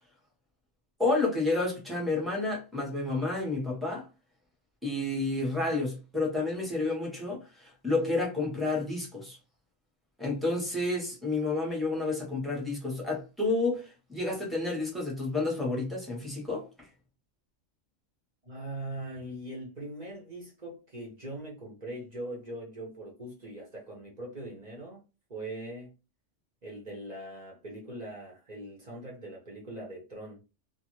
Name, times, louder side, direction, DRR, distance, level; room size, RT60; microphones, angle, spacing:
voice 1, 1.0-4.0 4.8-9.4 10.2-16.7, left 2 dB, ahead, 1.0 m, -30 dB
voice 2, 18.4-25.0 25.3-25.9 26.6-30.4, right 1 dB, 40° right, 0.9 m, -41 dB
2.5 x 2.5 x 3.1 m
omnidirectional pair, 1.3 m